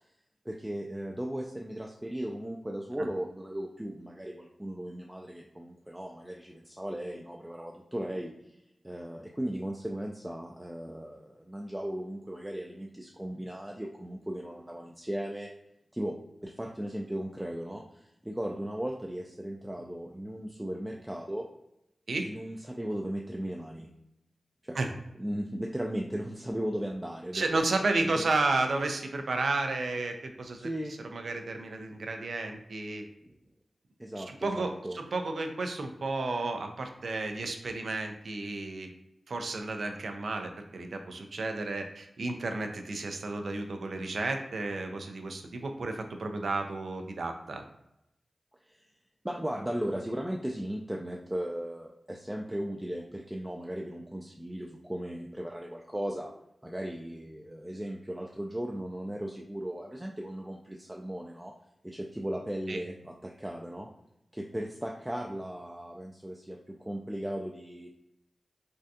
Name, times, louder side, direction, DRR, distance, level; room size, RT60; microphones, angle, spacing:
voice 1, 0.5-8.3 8.8-15.5 15.9-16.1 16.4-21.5 22.2-23.9 24.6-24.8 25.2-27.4 28.0-28.3 30.6-30.9 33.2-33.3 34.0-35.0 48.7-48.8 49.2-56.3 56.6-61.5 61.8-63.9 64.3-67.9, right 1 dB, 10° right, 0 dB, 0.4 m, -37 dB
voice 2, 27.3-30.6 31.1-33.0 34.2-38.9 39.3-47.6 62.7-62.8, right 3 dB, 75° right, 5 dB, 0.4 m, -32 dB
3.5 x 2.3 x 2.6 m, 0.84 s
cardioid pair, 40°, 0 cm